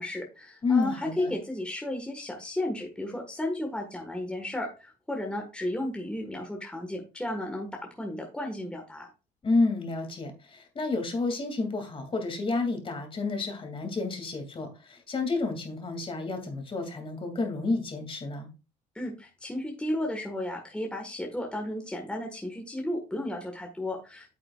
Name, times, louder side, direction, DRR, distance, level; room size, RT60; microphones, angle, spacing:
voice 1, 0.0-9.1 18.9-24.3, left 1 dB, 5° left, 1.5 m, -34 dB
voice 2, 0.6-1.3 9.4-18.5, left 3 dB, 30° left, 2.5 m, -30 dB
9.0 x 7.5 x 2.4 m
cardioid pair, 110°, 17 cm